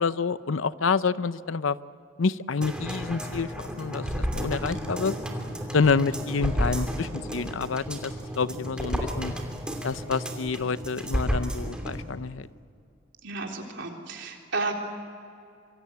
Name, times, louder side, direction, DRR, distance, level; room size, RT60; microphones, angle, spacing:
voice 1, 0.0-1.8 2.2-4.1 4.3-5.2 5.7-9.3 9.8-12.5, left 5 dB, 70° left, 15 dB, 0.6 m, -28 dB
sound 1, 2.6-12.0 12.4-12.5, equal, 5° right, 2.8 m, -32 dB
voice 2, 13.2-14.7, right 3 dB, 60° right, 1 dB, 3.9 m, -32 dB
25.5 x 24.0 x 8.5 m, 2.5 s
head